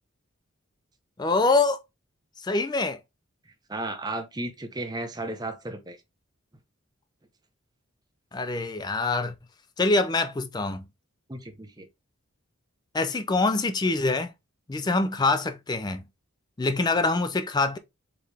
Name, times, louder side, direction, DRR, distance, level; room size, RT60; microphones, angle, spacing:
voice 1, 1.2-1.8 2.4-3.0 8.3-9.3 9.8-10.8 12.9-14.3 14.7-16.0 16.6-17.8, left 3 dB, 20° left, 0.4 m, -25 dB
voice 2, 3.7-6.0 11.3-11.9, right 2 dB, 20° right, 0.7 m, -34 dB
4.6 x 3.2 x 3.3 m
head